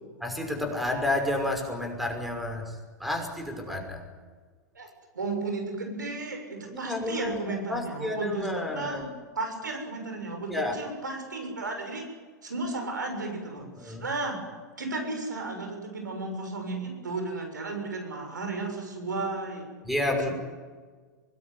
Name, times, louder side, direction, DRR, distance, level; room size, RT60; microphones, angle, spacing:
voice 1, 0.2-4.0 6.7-9.1 10.5-10.8 13.8-14.0 19.8-20.3, left 1 dB, ahead, 3 dB, 5.7 m, -31 dB
voice 2, 5.1-9.0 9.3-12.1 12.4-14.4 14.8-19.7, right 3 dB, 90° right, 4 dB, 7.0 m, -34 dB
24.5 x 20.0 x 9.5 m, 1.5 s
hypercardioid pair, 110°, 10 cm